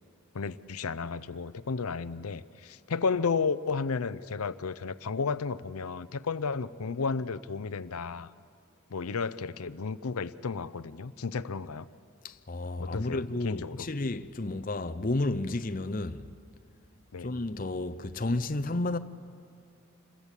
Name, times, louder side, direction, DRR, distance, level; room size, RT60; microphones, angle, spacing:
voice 1, 0.3-8.3 8.9-11.9 12.8-13.9 17.1-17.3, left 5 dB, 85° left, 0.6 m, -33 dB
voice 2, 12.2-16.3 17.2-19.0, left 2 dB, 40° left, 0.7 m, -32 dB
27.0 x 22.0 x 8.3 m
head